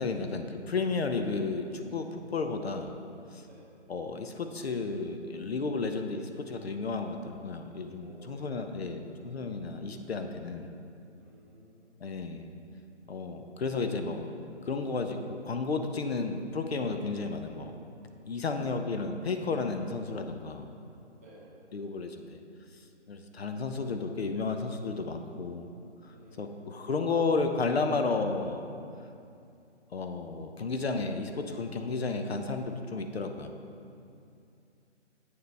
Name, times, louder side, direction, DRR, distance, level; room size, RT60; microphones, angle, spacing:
voice 1, 0.0-2.9 3.3-3.4 3.9-10.7 12.0-12.5 13.1-14.3 14.6-17.8 18.2-20.7 21.7-22.4 23.1-25.7 26.0-28.7 29.9-33.5, left 4 dB, 60° left, 6 dB, 0.6 m, -32 dB
voice 2, 8.0-9.3 11.2-12.0 21.2-21.6 26.1-26.7, right 1 dB, 15° right, -8 dB, 0.7 m, -55 dB
8.4 x 6.8 x 3.3 m, 2.5 s
figure-of-eight pair, 155°, 36 cm